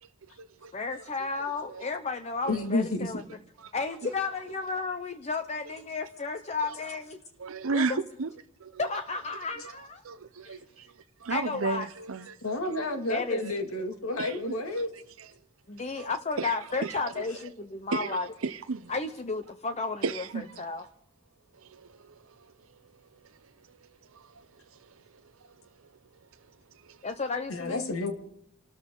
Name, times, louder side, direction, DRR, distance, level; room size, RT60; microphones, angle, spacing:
voice 1, 0.0-0.7 1.4-1.8 2.4-2.7 3.6-3.7 6.7-6.8 7.4-8.3 8.6-8.9 9.6-9.7 10.0-12.4 12.6-12.9 13.4-13.5 14.2-14.4 14.7-15.3 15.9-17.4 17.9-18.9 20.0-20.9 21.5-22.9 23.2-25.6 25.8-25.9 26.7-27.1, right 4 dB, 70° right, 0.6 m, -36 dB
voice 2, 0.7-3.2 3.7-7.2 7.7-8.0 8.8-10.0 10.5-10.6 11.3-11.9 13.1-13.4 15.7-18.3 18.9-20.9 27.0-27.9, left 4 dB, 30° left, 0.7 m, -33 dB
voice 3, 2.5-3.1 12.4-14.9 27.5-28.1, left 2 dB, 80° left, 2.4 m, -30 dB
28.0 x 13.5 x 3.9 m
head